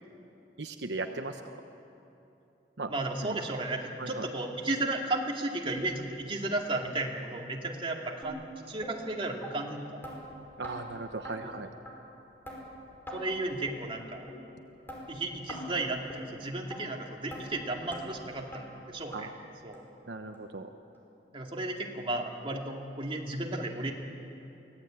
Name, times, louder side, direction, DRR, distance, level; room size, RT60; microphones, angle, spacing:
voice 1, 0.6-1.4 2.8-2.9 3.2-3.4 4.0-4.2 10.6-11.7 19.1-19.3 20.1-20.7, right 3 dB, 75° right, 6 dB, 1.0 m, -37 dB
voice 2, 2.9-10.2 11.4-11.7 13.1-14.2 15.1-19.3 19.6-19.8 21.3-23.9, right 2 dB, 30° right, 0 dB, 2.5 m, -34 dB
sound 1, 8.2-8.4 8.8-9.0 9.4-9.5 10.0-10.2 10.6-10.8 11.2-11.4 11.9-12.0 12.5-12.6 13.1-13.2 13.7-13.8 14.3-14.4 14.9-15.0 15.5-15.7 16.1-16.2 16.7-16.8 17.3-17.4 17.9-18.0 18.5-18.6 19.1-19.2 19.7-19.8 20.3-20.4 20.9-21.0, equal, 15° left, 5.2 m, -42 dB
24.0 x 17.0 x 9.0 m, 2.9 s
head